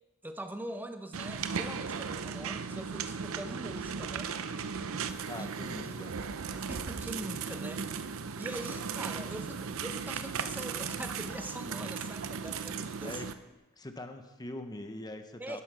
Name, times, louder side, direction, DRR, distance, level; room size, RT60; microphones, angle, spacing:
voice 1, 0.2-4.4 5.4-5.9 6.5-7.9 8.4-13.2 15.4-15.6, right 1 dB, 10° right, 7 dB, 0.8 m, -42 dB
sound 1, 1.1-13.3, right 6 dB, 70° right, 0.6 m, -37 dB
voice 2, 5.3-6.1 13.0-13.3 13.8-15.6, left 2 dB, 20° left, 7 dB, 0.8 m, -42 dB
11.0 x 11.0 x 5.6 m, 1.1 s
head